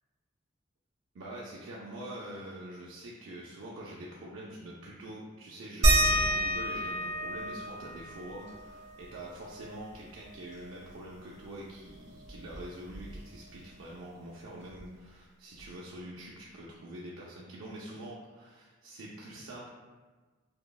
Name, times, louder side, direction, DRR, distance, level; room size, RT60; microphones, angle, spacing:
voice 1, 1.1-19.7, right 1 dB, 90° right, -4 dB, 0.4 m, -45 dB
sound 1, 5.8-11.0 11.3-11.4 11.7-13.5 14.8-14.9 15.6-15.7, right 1 dB, 35° right, 1.1 m, -31 dB
5.3 x 2.0 x 2.3 m, 1.3 s
head